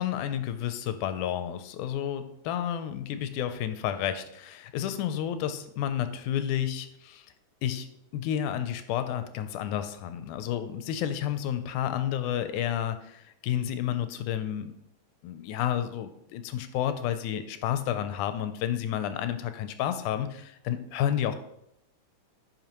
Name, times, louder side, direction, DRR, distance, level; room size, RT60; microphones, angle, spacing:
voice 1, 0.0-7.3 7.6-7.9 8.1-14.7 15.2-21.4, left 10 dB, 80° left, 10 dB, 2.0 m, -31 dB
11.0 x 5.3 x 3.0 m, 0.79 s
omnidirectional pair, 3.6 m